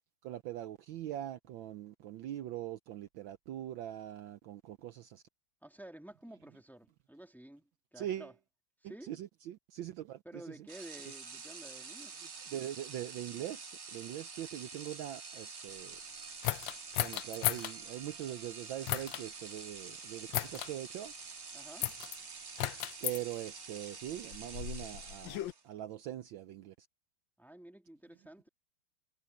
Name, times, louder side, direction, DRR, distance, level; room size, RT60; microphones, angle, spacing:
voice 1, 0.2-5.2 8.0-8.3 9.1-10.2 12.5-16.0 17.0-21.1 23.0-26.9, right 12 dB, 70° right, 1.3 m, -42 dB
voice 2, 5.6-8.3 8.8-9.1 10.2-12.2 21.5-21.9 27.4-28.5, right 1 dB, ahead, 2.2 m, -51 dB
sound 1, 10.7-25.7, right 4 dB, 45° right, 2.3 m, -47 dB
sound 2, 16.4-17.7 18.8-19.2 20.3-20.7 21.8-22.2 22.6-23.2 24.1-25.5, left 15 dB, 75° left, 1.2 m, -35 dB
omnidirectional pair, 2.4 m